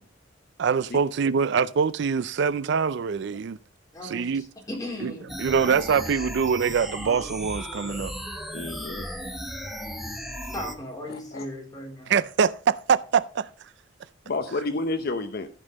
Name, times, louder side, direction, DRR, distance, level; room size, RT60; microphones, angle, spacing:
voice 1, 0.6-3.6 4.0-4.4 5.0-5.1 5.4-8.1 12.1-13.5, right 6 dB, 65° right, 0.4 m, -24 dB
voice 2, 3.9-5.9 10.4-12.1, left 1 dB, 20° left, 3.8 m, -37 dB
sound 1, 5.3-10.7, equal, ahead, 1.2 m, -35 dB
voice 3, 8.5-9.1 9.6-9.7 10.0-10.6 11.1-11.5 14.2-15.5, left 2 dB, 55° left, 0.7 m, -31 dB
14.5 x 5.5 x 4.0 m
head